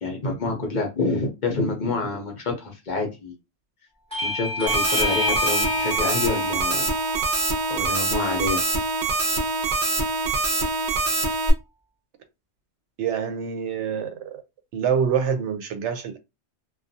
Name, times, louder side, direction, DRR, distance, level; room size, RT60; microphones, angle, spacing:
voice 1, 0.0-3.3 4.2-6.9 7.7-8.6, left 3 dB, 50° left, 0.7 m, -27 dB
Bell / Doorbell, 4.1-9.3, left 2 dB, 5° left, 0.8 m, -30 dB
sound 1, 4.7-11.5, right 3 dB, 50° right, 0.7 m, -24 dB
voice 2, 13.0-14.4 14.7-16.2, right 7 dB, 80° right, 0.9 m, -26 dB
2.4 x 2.3 x 2.7 m
omnidirectional pair, 1.2 m